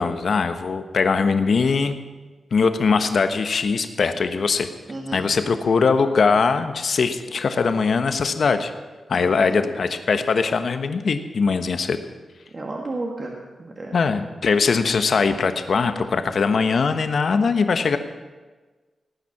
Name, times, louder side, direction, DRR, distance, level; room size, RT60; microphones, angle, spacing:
voice 1, 0.0-2.0 2.5-4.7 5.1-8.7 9.1-12.0 13.9-18.0, left 5 dB, 55° left, 9 dB, 1.0 m, -21 dB
voice 2, 4.9-5.3 9.2-9.8 12.5-14.0 15.8-16.1, right 2 dB, 35° right, -1 dB, 1.6 m, -33 dB
18.0 x 9.3 x 5.9 m, 1.3 s
wide cardioid pair, 130°, 0 cm